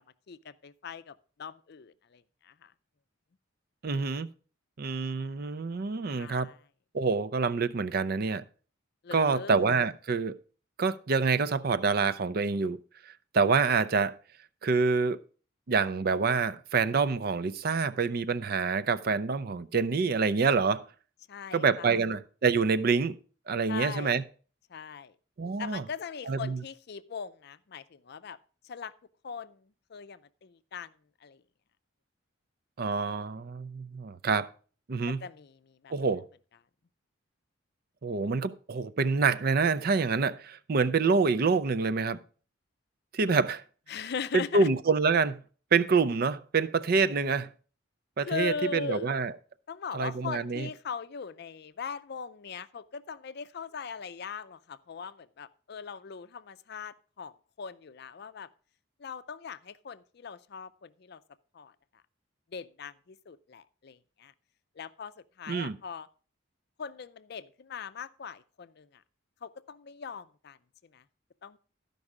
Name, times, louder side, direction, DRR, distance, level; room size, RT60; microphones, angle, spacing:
voice 1, 0.3-2.7 6.2-6.6 9.0-9.5 21.3-22.0 23.7-24.2 24.7-25.2 25.6-28.4 28.6-28.9 29.2-30.9 31.2-31.4 35.2-35.9 43.9-44.7 48.2-49.1 49.7-58.5 59.0-61.2 61.5-61.7 62.5-64.3 64.8-66.1 66.8-69.0 69.4-70.6 70.9-71.0 71.4-71.6, left 6 dB, 55° left, 0.5 m, -40 dB
voice 2, 3.8-4.3 4.8-6.5 6.9-8.4 9.1-10.4 10.8-12.8 13.1-14.1 14.6-15.2 15.7-20.8 21.5-23.2 23.5-24.2 25.4-25.8 26.3-26.6 32.8-34.5 34.9-35.2 35.9-36.2 38.0-42.2 43.1-43.6 44.3-45.4 45.7-47.5 48.2-49.3 49.9-50.7 65.5-65.8, right 4 dB, 50° right, 0.5 m, -27 dB
13.0 x 5.4 x 4.8 m
head